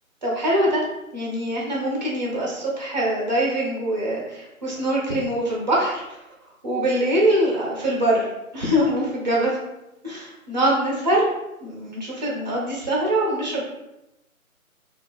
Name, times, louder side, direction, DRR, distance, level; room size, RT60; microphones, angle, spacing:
voice 1, 0.2-0.8 1.1-6.0 6.6-9.6 10.0-11.3 11.6-13.7, right 1 dB, 30° right, -4 dB, 0.6 m, -23 dB
2.3 x 2.3 x 2.4 m, 0.91 s
figure-of-eight pair, 150°, 43 cm